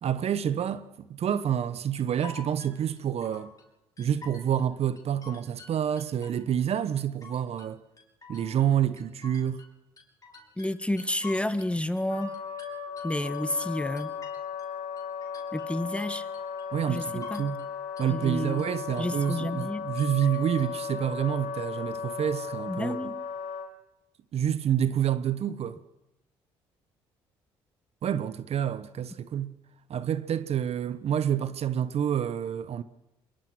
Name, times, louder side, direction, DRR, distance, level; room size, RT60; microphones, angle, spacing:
voice 1, 0.0-3.5 4.0-7.8 8.3-9.6 16.7-17.6 18.0-23.1 24.3-25.8 28.0-29.5 29.9-32.8, right 9 dB, 55° right, 1.0 m, -28 dB
sound 1, 2.0-3.6 4.0-4.7 5.0-6.7 7.0-7.7 8.0-9.7 10.0-11.7 12.0-14.7 15.0-15.7 16.0-16.7 17.0-17.7 18.0-18.7 19.0-19.7 20.0-20.7, left 4 dB, 30° left, 5.1 m, -48 dB
voice 2, 10.6-12.3 13.0-14.1 15.5-16.3 16.9-17.4 18.1-18.6 19.0-19.9 22.7-23.2, left 1 dB, 10° left, 1.4 m, -30 dB
Wind instrument woodwind instrument, 12.1-23.7, left 7 dB, 65° left, 3.5 m, -36 dB
23.0 x 22.0 x 6.2 m
hypercardioid pair, 55°, 13 cm